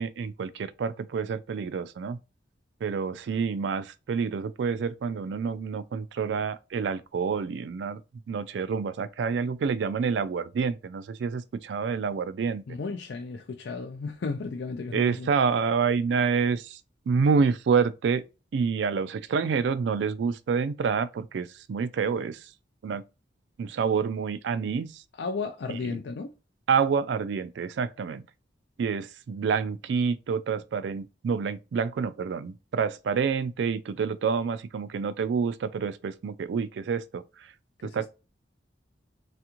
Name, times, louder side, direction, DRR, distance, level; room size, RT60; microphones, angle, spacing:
voice 1, 0.0-2.2 2.8-8.0 8.3-12.6 14.9-16.8 17.1-18.2 18.5-22.5 22.8-23.0 23.6-25.0 26.7-28.2 28.8-37.5 37.8-38.1, right 5 dB, 70° right, 0.3 m, -28 dB
voice 2, 12.7-15.3 25.1-26.3 37.8-38.1, left 4 dB, 70° left, 0.4 m, -34 dB
3.4 x 2.4 x 2.9 m
head